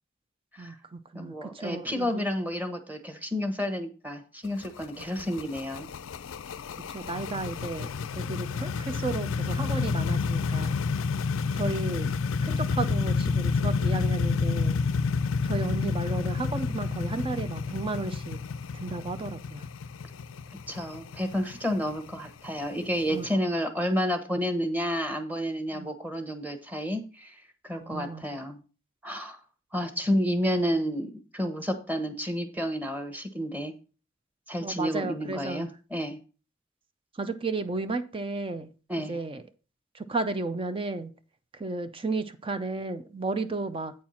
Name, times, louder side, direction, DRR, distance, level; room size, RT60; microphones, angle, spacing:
voice 1, 0.6-2.3 5.0-5.3 6.9-7.9 8.1-10.7 11.5-12.1 12.4-14.8 15.4-18.4 18.7-19.7 23.1-23.5 25.7-25.9 27.8-28.2 34.6-35.7 37.2-38.7 39.1-39.4 39.9-41.1 41.5-43.9, right 3 dB, 25° right, 10 dB, 0.6 m, -33 dB
voice 2, 1.1-5.9 20.7-27.3 27.6-28.6 29.0-29.4 29.7-33.7 34.5-36.2 38.9-39.2, equal, 10° right, 7 dB, 1.2 m, -30 dB
sound 1, 4.4-23.2, left 4 dB, 85° left, 0.5 m, -29 dB
8.5 x 4.5 x 5.6 m, 0.35 s
head